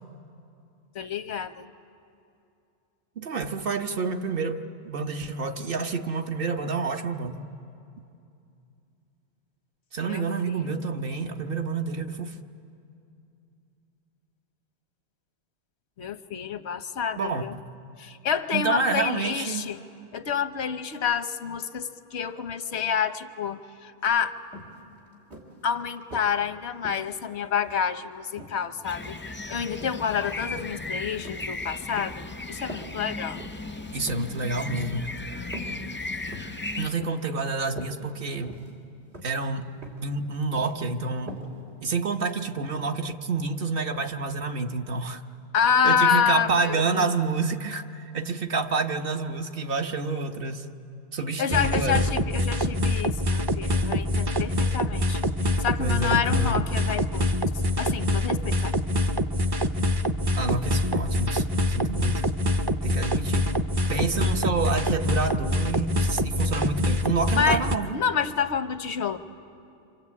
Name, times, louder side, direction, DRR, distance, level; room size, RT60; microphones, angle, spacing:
voice 1, 0.9-1.7 10.1-10.8 16.0-17.5 18.0-19.8 20.1-24.4 25.6-33.4 45.5-47.2 51.4-58.7 67.3-67.6 67.9-69.2, left 7 dB, 90° left, 10 dB, 1.2 m, -28 dB
voice 2, 3.2-7.4 9.9-12.3 17.2-17.5 18.5-19.6 33.9-35.1 36.8-38.6 39.2-41.4 41.8-45.2 45.8-50.7 51.1-52.0 55.8-56.6 60.4-62.3 62.8-63.5 63.9-68.0, right 4 dB, 60° right, 5 dB, 1.2 m, -28 dB
sound 1, 24.1-24.2 24.5-24.8 25.3-26.4 26.8-27.9 28.4-29.3 29.8-30.1 30.4-30.8 31.2-32.2 32.7-32.9 33.3-33.6 34.0-34.3 34.8-35.0 35.5-35.8 36.1-36.6 37.0-37.3 37.6-38.0 38.5-38.8 39.1-39.4 39.8-40.1 40.4-40.8 41.3-41.5 41.8-41.9, equal, 80° right, 3.4 m, -43 dB
sound 2, 28.8-36.9, left 2 dB, 15° left, 0.5 m, -36 dB
sound 3, 51.5-67.8, left 1 dB, 25° right, 0.7 m, -25 dB
27.0 x 26.0 x 8.4 m, 2.6 s
omnidirectional pair, 1.1 m